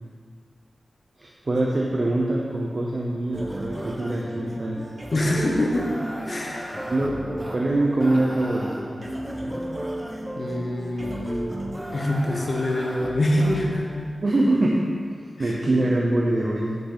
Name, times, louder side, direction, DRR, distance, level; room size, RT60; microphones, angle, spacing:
voice 1, 1.2-4.8 5.3-5.4 6.9-9.0 9.4-9.6 14.2-14.9 15.4-16.8, right 1 dB, 45° right, -3 dB, 0.7 m, -24 dB
sound 1, 3.3-13.9, equal, 10° right, 0.9 m, -34 dB
voice 2, 5.1-5.9 6.3-6.8 10.4-11.6 11.9-14.1 15.4-15.6, left 1 dB, 50° left, 0 dB, 1.1 m, -25 dB
8.3 x 6.6 x 4.0 m, 2.1 s
wide cardioid pair, 110°, 0 cm